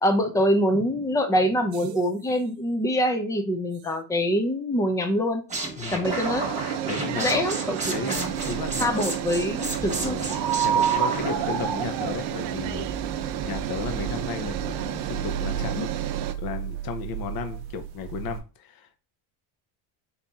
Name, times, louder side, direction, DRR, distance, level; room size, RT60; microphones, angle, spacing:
voice 1, 0.0-5.4 5.9-6.5 7.2-8.3 8.8-10.2, equal, 5° left, 0.4 m, -25 dB
sound 1, 1.7-2.2 3.8-3.9 6.0-16.3, right 11 dB, 85° right, 0.7 m, -32 dB
sound 2, 5.5-11.4, right 2 dB, 15° right, 1.3 m, -33 dB
voice 2, 6.8-7.5 7.9-9.1 9.9-15.9 16.4-19.0, left 6 dB, 45° left, 0.8 m, -34 dB
sound 3, 8.1-18.4, right 9 dB, 50° right, 0.8 m, -31 dB
4.2 x 2.7 x 3.4 m
cardioid pair, 125°, 50 cm